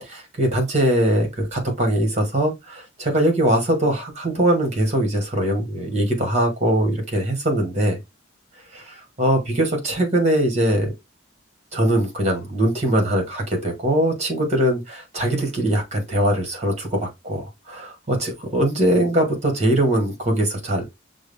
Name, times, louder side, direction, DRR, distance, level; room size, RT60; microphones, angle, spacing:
voice 1, 0.1-8.0 8.7-10.9 11.7-20.9, right 1 dB, 35° right, 1.6 m, -21 dB
6.1 x 2.1 x 3.4 m
head